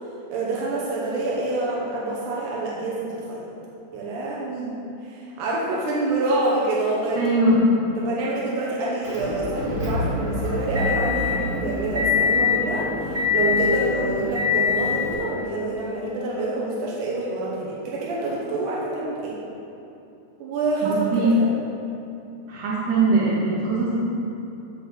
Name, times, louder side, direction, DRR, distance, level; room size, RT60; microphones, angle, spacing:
voice 1, 0.3-3.5 3.9-7.3 8.0-19.4 20.4-21.5, right 2 dB, 85° right, -5 dB, 2.4 m, -27 dB
voice 2, 7.2-7.6 20.8-21.3 22.5-24.0, right 3 dB, 65° right, -9 dB, 2.0 m, -21 dB
Motor vehicle (road) / Engine, 9.0-15.1, left 5 dB, 40° right, 0.9 m, -24 dB
7.4 x 5.7 x 4.3 m, 2.9 s
omnidirectional pair, 3.6 m